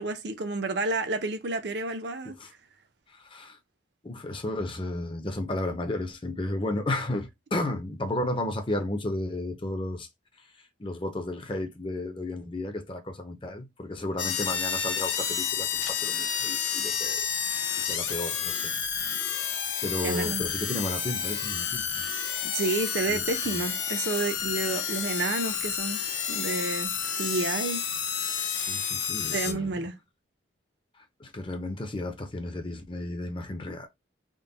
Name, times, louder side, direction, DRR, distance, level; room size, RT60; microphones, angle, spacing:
voice 1, 0.0-2.4 20.0-20.4 22.4-26.0 26.3-27.8 29.3-29.9, right 3 dB, 65° right, 0.6 m, -30 dB
voice 2, 3.1-3.6 4.0-10.1 10.8-18.6 19.8-22.1 23.1-23.3 23.5-23.6 28.7-29.8 31.0-33.9, left 1 dB, 25° left, 0.6 m, -33 dB
sound 1, 14.2-29.5, left 7 dB, 80° left, 0.8 m, -30 dB
3.6 x 2.2 x 3.9 m
head